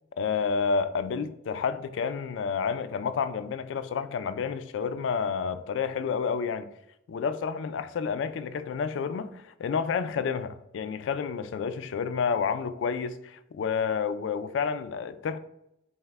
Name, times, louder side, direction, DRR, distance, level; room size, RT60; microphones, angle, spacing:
voice 1, 0.2-6.7 7.1-15.4, left 6 dB, 85° left, 0.3 m, -30 dB
5.4 x 2.1 x 3.3 m
head